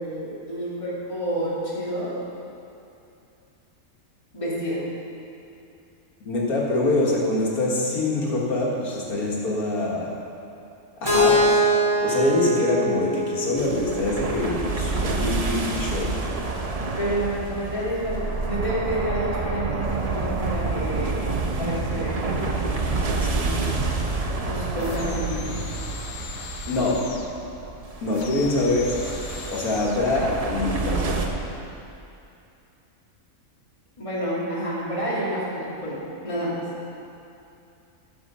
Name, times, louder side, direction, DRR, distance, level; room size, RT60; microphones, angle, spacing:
voice 1, 0.0-2.2 4.3-4.9 17.0-22.6 24.5-25.6 34.0-36.6, right 1 dB, 20° left, -7 dB, 2.3 m, -29 dB
voice 2, 6.2-10.1 11.0-11.6 12.0-16.2 23.2-23.9 26.7-27.0 28.0-29.0 29.5-31.2, left 2 dB, 90° left, -3 dB, 2.2 m, -24 dB
Keyboard (musical), 11.0-15.0, equal, 15° right, 2.7 m, -23 dB
sound 1, 13.6-31.3, right 3 dB, 35° right, 0.6 m, -28 dB
sound 2, 24.8-27.4 28.1-30.1, left 5 dB, 70° left, 1.2 m, -39 dB
11.5 x 7.3 x 5.5 m, 2.7 s
omnidirectional pair, 1.5 m